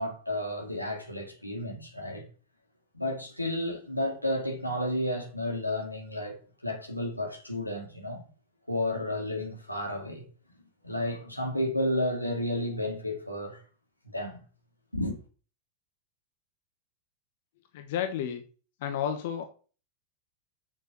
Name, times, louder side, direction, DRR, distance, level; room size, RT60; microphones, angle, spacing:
voice 1, 0.0-2.2 2.9-6.4 6.6-8.3 8.7-10.2 10.8-13.6 14.1-14.4 14.9-15.2, left 1 dB, 85° left, 2.3 m, -32 dB
voice 2, 17.7-18.4 18.8-19.4, left 9 dB, 50° left, 1.0 m, -31 dB
6.9 x 6.4 x 6.4 m
figure-of-eight pair, 90°, 0 cm